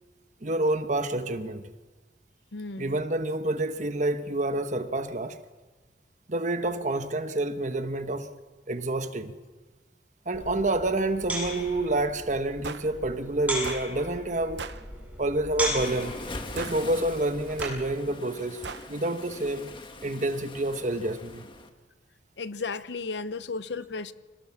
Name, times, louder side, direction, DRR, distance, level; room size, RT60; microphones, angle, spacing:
voice 1, 0.4-1.7 2.8-5.4 6.3-8.3 8.7-9.4 10.3-14.7 15.2-16.2 16.5-19.7 20.0-21.4, right 2 dB, 40° right, 1.2 m, -28 dB
voice 2, 2.5-3.0 22.4-24.1, left 4 dB, 70° left, 0.9 m, -34 dB
sound 1, 10.3-17.9, equal, 10° right, 7.4 m, -37 dB
sound 2, 12.6-12.9 13.6-13.9 14.6-14.8 15.6-15.9 16.6-16.8 17.6-17.8 18.6-18.9, right 5 dB, 70° right, 0.9 m, -37 dB
Waves surf, 15.8-21.7, left 2 dB, 25° left, 1.7 m, -42 dB
26.5 x 18.5 x 7.2 m
head